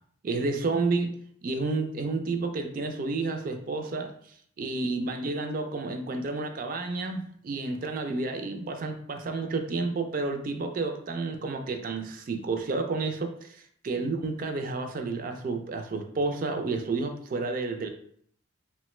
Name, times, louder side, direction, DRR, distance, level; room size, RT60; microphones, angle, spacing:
voice 1, 0.2-1.1 1.4-4.1 4.6-17.9, right 3 dB, 40° right, 5 dB, 0.3 m, -30 dB
3.0 x 2.1 x 3.0 m, 0.63 s
head